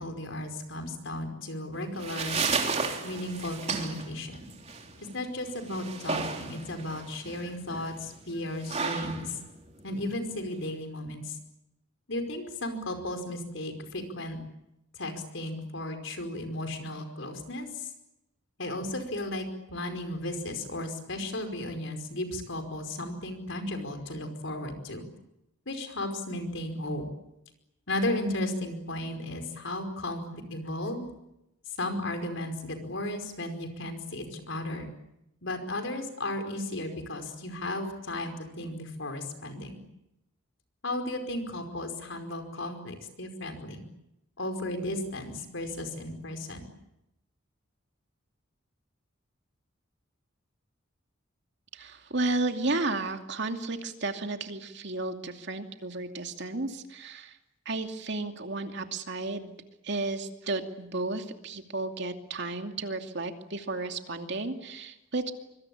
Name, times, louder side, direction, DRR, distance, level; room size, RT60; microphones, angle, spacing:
voice 1, 0.0-2.4 3.0-4.4 5.0-9.4 9.8-11.4 12.1-14.4 15.0-17.9 18.6-25.0 25.7-27.0 27.9-31.1 31.8-34.9 35.4-39.8 40.8-43.8 44.4-46.7, left 1 dB, 70° left, 7 dB, 5.2 m, -35 dB
sound 1, 1.7-10.7, right 4 dB, 35° right, 3.4 m, -34 dB
voice 2, 51.7-57.4 57.7-59.5 59.8-65.3, right 2 dB, 60° right, 5 dB, 2.6 m, -33 dB
25.0 x 24.5 x 8.7 m, 0.86 s
head